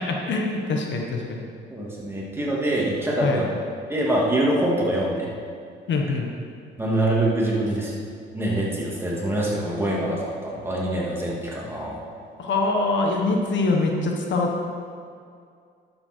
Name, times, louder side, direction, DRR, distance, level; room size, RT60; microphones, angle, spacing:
voice 1, 0.0-1.5 3.2-3.4 5.9-6.3 12.4-14.5, left 3 dB, 65° left, 1 dB, 1.4 m, -24 dB
voice 2, 1.7-3.5 3.9-5.3 6.8-8.0 8.3-12.0, right 1 dB, 10° right, -4 dB, 2.6 m, -24 dB
11.0 x 7.8 x 4.6 m, 2.3 s
cardioid pair, 90°, 20 cm